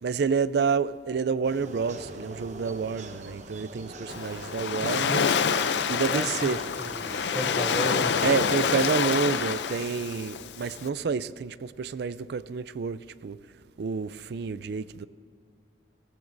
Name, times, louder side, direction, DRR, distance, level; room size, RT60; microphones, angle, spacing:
voice 1, 0.0-5.3 5.9-6.6 8.2-13.4 13.8-15.1, right 5 dB, 65° right, 0.4 m, -29 dB
sound 1, 1.4-8.9, right 2 dB, 40° right, 1.0 m, -43 dB
Waves surf, 4.1-10.9, left 6 dB, 75° left, 0.5 m, -27 dB
voice 2, 6.1-8.8, equal, ahead, 0.5 m, -34 dB
18.5 x 15.0 x 2.6 m
head